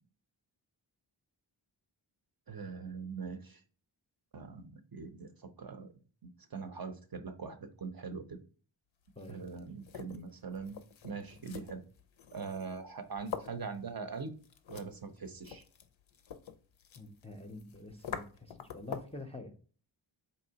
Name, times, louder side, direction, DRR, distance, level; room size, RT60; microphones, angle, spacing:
voice 1, 2.5-3.6 4.3-5.9 6.5-8.4 9.3-10.8 11.0-11.8 12.3-14.3 14.7-15.6, right 5 dB, 50° right, 7 dB, 0.6 m, -42 dB
sound 1, 9.0-19.2, left 8 dB, 75° left, 0.5 m, -47 dB
voice 2, 9.2-9.5 17.0-19.5, left 2 dB, 15° left, 4 dB, 0.5 m, -47 dB
4.2 x 2.7 x 2.7 m, 0.39 s
wide cardioid pair, 65°, 46 cm